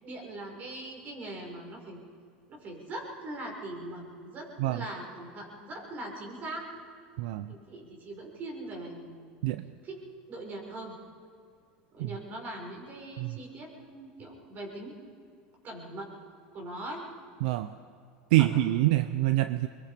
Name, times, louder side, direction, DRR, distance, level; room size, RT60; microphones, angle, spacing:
voice 1, 0.0-2.0 2.5-6.7 7.5-9.3 9.8-10.0 10.3-11.0 11.9-14.9 15.6-16.1 16.5-17.0 18.4-18.5, right 1 dB, 40° right, 0 dB, 6.0 m, -41 dB
voice 2, 7.2-7.5 9.4-9.6 12.0-12.1 13.2-13.4 17.4-17.7 18.3-19.7, right 16 dB, 75° right, 12 dB, 0.7 m, -25 dB
23.0 x 22.0 x 5.2 m, 2.2 s
supercardioid pair, 115°, 5 cm